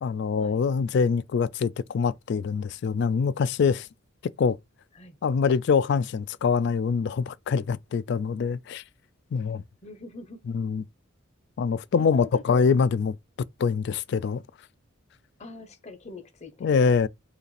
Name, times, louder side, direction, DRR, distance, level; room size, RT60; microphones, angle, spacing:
voice 1, 0.0-3.9 4.4-4.6 5.2-8.8 9.3-9.6 10.5-10.8 11.6-13.2 13.6-14.4 16.6-17.1, left 5 dB, 55° left, 0.3 m, -24 dB
voice 2, 9.8-10.4 12.0-12.7 15.4-16.7, left 3 dB, 35° left, 0.8 m, -43 dB
4.9 x 2.5 x 3.2 m
head